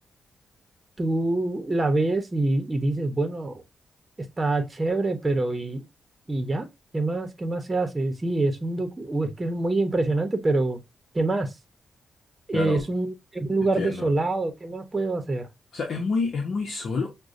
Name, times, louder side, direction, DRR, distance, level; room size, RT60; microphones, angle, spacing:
voice 1, 1.0-3.6 4.4-5.8 6.3-6.7 6.9-10.8 11.1-11.5 12.5-15.5, right 2 dB, 25° right, 0.9 m, -25 dB
voice 2, 12.5-12.8 13.6-14.1 15.7-17.1, left 4 dB, 65° left, 0.8 m, -28 dB
6.0 x 2.2 x 2.6 m
cardioid pair, 75°, 0 cm